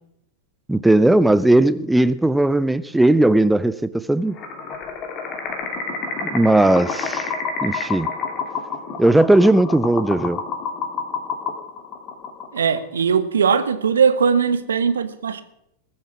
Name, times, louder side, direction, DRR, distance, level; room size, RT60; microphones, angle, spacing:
voice 1, 0.7-4.4 6.3-7.3 7.6-8.1 9.0-10.4, right 1 dB, 5° right, 0.4 m, -17 dB
sound 1, 4.3-12.8, left 4 dB, 35° left, 2.3 m, -29 dB
voice 2, 12.5-15.4, right 6 dB, 70° right, 1.1 m, -19 dB
20.5 x 7.2 x 6.1 m
figure-of-eight pair, 90°, 0 cm